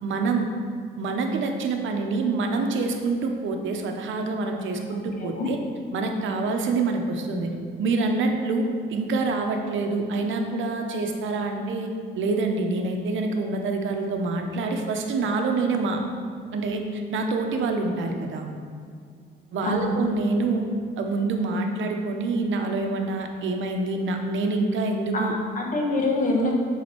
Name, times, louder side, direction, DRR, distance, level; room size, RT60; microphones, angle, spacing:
voice 1, 0.0-0.5 1.0-5.6 5.9-7.5 7.8-11.9 12.2-16.0 16.5-18.5 19.5-20.6 21.0-25.3, right 3 dB, 75° right, 4 dB, 0.8 m, -26 dB
voice 2, 4.9-5.5 19.6-20.0 25.1-26.5, left 2 dB, 40° left, 0 dB, 1.3 m, -26 dB
7.2 x 4.0 x 4.6 m, 2.2 s
cardioid pair, 90°, 20 cm